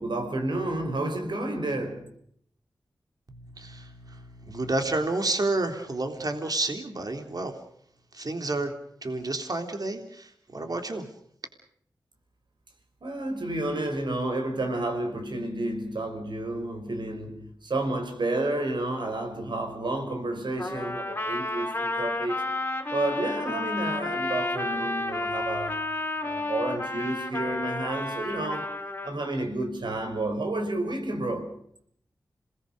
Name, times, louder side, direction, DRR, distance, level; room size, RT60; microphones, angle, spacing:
voice 1, 0.0-2.1 13.0-22.4 22.9-25.8 26.2-28.8 29.0-31.6, right 2 dB, 75° right, 5.2 m, -30 dB
voice 2, 3.3-7.5 8.1-8.7 9.0-11.1, right 2 dB, 55° right, 3.5 m, -30 dB
Trumpet, 20.6-29.1, left 2 dB, 25° left, 4.8 m, -31 dB
27.5 x 20.0 x 6.6 m
cardioid pair, 45°, 8 cm